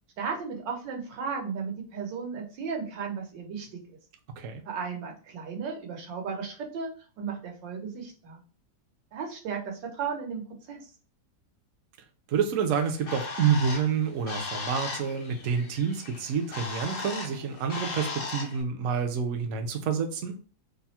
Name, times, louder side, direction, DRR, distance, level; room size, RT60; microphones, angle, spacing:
voice 1, 0.2-3.8 4.6-6.9 7.2-8.4 9.1-10.9, right 5 dB, 90° right, 1.6 m, -35 dB
voice 2, 12.3-20.4, right 6 dB, 65° right, 0.8 m, -28 dB
Bird, 12.7-18.6, left 3 dB, 85° left, 0.5 m, -37 dB
3.5 x 2.0 x 4.1 m
omnidirectional pair, 1.9 m